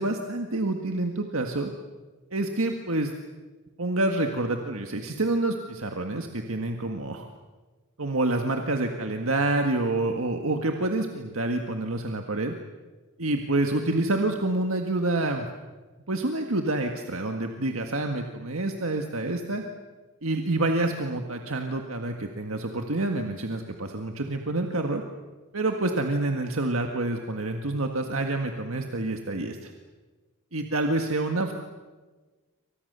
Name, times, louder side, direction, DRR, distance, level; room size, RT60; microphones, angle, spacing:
voice 1, 0.0-1.7 2.3-3.1 3.8-7.3 8.0-12.6 13.2-15.5 16.1-19.6 20.2-25.0 25.5-29.7 30.5-31.5, right 2 dB, 70° right, 4 dB, 1.7 m, -27 dB
28.5 x 25.5 x 6.8 m, 1.3 s
head